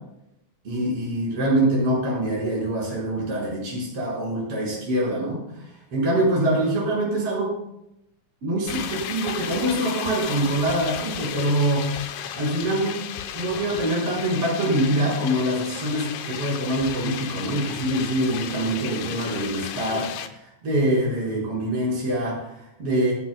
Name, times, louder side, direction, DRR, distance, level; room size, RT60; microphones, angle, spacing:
voice 1, 0.6-7.5 8.4-12.0 12.4-12.9 13.3-20.1 20.4-23.1, right 1 dB, 50° right, -6 dB, 5.9 m, -24 dB
sound 1, 8.7-20.3, left 9 dB, 85° left, 2.4 m, -34 dB
26.0 x 13.0 x 2.3 m, 0.84 s
omnidirectional pair, 3.4 m